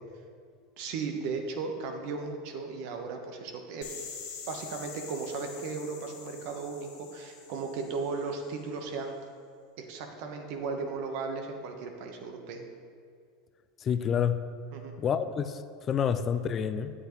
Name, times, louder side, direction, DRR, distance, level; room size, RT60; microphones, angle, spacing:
voice 1, 0.8-3.8 4.5-9.2 9.8-12.7 14.7-14.9, right 4 dB, 60° right, 4 dB, 1.1 m, -36 dB
sound 1, 3.8-8.6, left 5 dB, 70° left, 1.8 m, -45 dB
voice 2, 13.8-14.4 15.0-15.6 15.9-16.9, left 8 dB, 35° left, 11 dB, 0.4 m, -28 dB
9.4 x 7.9 x 3.2 m, 2.2 s
hypercardioid pair, 90°, 0 cm